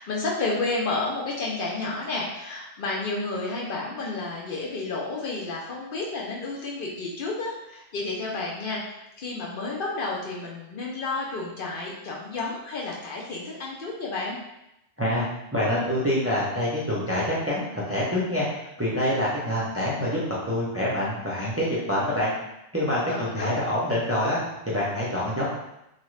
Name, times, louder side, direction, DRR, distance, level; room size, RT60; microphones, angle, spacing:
voice 1, 0.0-14.4 23.1-23.6, left 3 dB, 60° left, -3 dB, 0.8 m, -31 dB
voice 2, 15.5-18.5 18.8-20.2 20.4-22.3 22.7-24.4 24.7-25.5, left 1 dB, 15° right, -7 dB, 0.5 m, -26 dB
2.7 x 2.4 x 3.1 m, 0.86 s
omnidirectional pair, 1.1 m